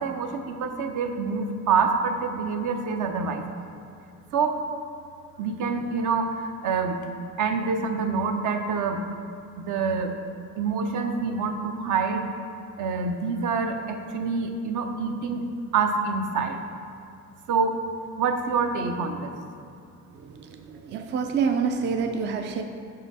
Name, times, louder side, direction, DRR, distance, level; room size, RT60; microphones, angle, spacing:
voice 1, 0.0-3.4 4.3-4.6 5.4-6.3 6.6-7.0 7.4-9.0 9.7-10.1 10.6-12.3 12.8-15.4 15.7-16.6 17.5-17.8 18.2-19.3, right 5 dB, 65° right, 5 dB, 0.7 m, -26 dB
voice 2, 20.2-22.6, right 6 dB, 35° right, 5 dB, 0.4 m, -27 dB
6.3 x 5.6 x 4.1 m, 2.5 s
cardioid pair, 115°, 32 cm